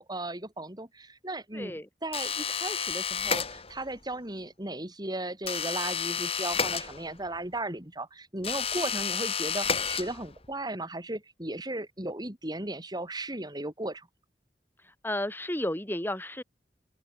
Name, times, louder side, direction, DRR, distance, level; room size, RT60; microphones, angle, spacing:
voice 1, 0.0-14.1, right 1 dB, 25° right, 5.3 m, -36 dB
voice 2, 1.5-1.9 15.0-16.4, left 1 dB, 10° left, 4.6 m, -32 dB
sound 1, 2.1-3.9 5.4-7.4 8.4-10.5, left 6 dB, 35° left, 4.6 m, -31 dB
open air
head